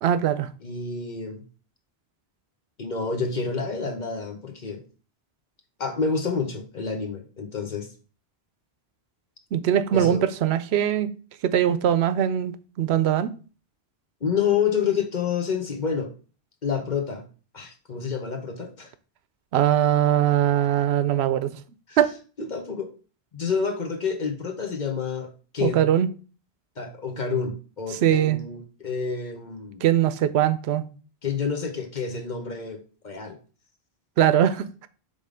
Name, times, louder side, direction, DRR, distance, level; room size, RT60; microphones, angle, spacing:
voice 1, 0.0-0.5 9.5-11.1 11.4-13.3 19.5-21.5 22.0-22.1 25.6-26.1 27.9-28.4 29.8-30.8 34.2-34.9, right 10 dB, 85° right, 0.8 m, -21 dB
voice 2, 0.6-1.4 2.8-4.8 5.8-7.9 9.9-10.2 14.2-16.1 16.6-17.2 17.5-18.9 21.9-22.0 22.4-22.9 23.3-25.8 26.8-29.8 31.2-33.4, left 6 dB, 50° left, 0.9 m, -28 dB
5.4 x 3.6 x 5.0 m
omnidirectional pair, 1.0 m